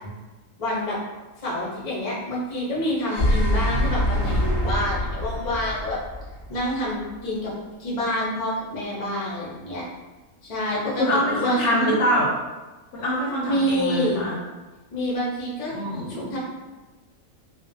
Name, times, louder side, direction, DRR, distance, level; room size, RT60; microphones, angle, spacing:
voice 1, 0.6-1.0 1.4-6.0 6.5-7.5 7.8-9.8 10.4-12.0 13.5-14.3 14.9-15.7 16.1-16.4, left 1 dB, 45° left, -6 dB, 0.4 m, -27 dB
sound 1, 2.8-7.0, equal, 35° right, 0.5 m, -24 dB
voice 2, 11.0-12.3 12.9-14.4 15.7-16.4, equal, 65° left, -4 dB, 0.8 m, -24 dB
2.5 x 2.1 x 2.5 m, 1.2 s
omnidirectional pair, 1.5 m